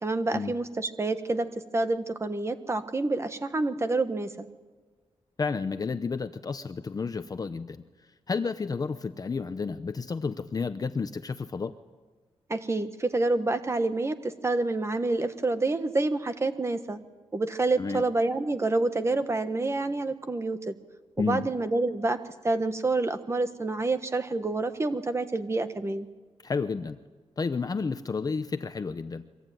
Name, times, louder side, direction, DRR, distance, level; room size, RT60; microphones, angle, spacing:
voice 1, 0.0-4.5 12.5-17.0 17.3-20.7 21.2-22.2 22.4-26.1, right 2 dB, 25° right, 9 dB, 1.4 m, -28 dB
voice 2, 5.4-7.8 8.3-11.7 17.8-18.0 21.2-21.5 26.4-27.0 27.4-29.2, left 4 dB, 35° left, 9 dB, 0.8 m, -31 dB
24.0 x 24.0 x 9.3 m, 1.3 s
wide cardioid pair, 160°, 11 cm